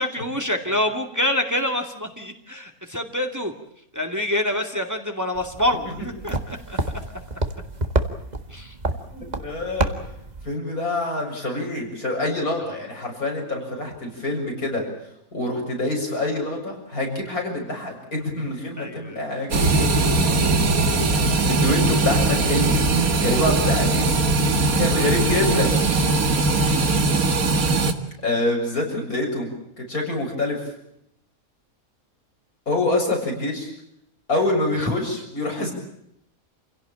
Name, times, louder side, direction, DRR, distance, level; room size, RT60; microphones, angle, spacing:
voice 1, 0.0-3.5 3.9-6.8 8.5-8.8 18.8-19.2 26.4-26.7 34.8-34.9, left 1 dB, 10° right, 4 dB, 2.3 m, -26 dB
sound 1, 5.4-10.6, right 2 dB, 30° right, 1.8 m, -29 dB
voice 2, 9.1-9.9 10.4-14.8 15.3-20.6 21.4-22.8 23.2-24.1 24.8-25.7 28.2-30.6 32.7-33.7 34.3-35.7, left 2 dB, 85° left, 1 dB, 7.7 m, -26 dB
sound 2, 19.5-27.9, right 3 dB, 80° right, 2.3 m, -20 dB
28.0 x 17.0 x 8.8 m, 0.76 s
omnidirectional pair, 1.5 m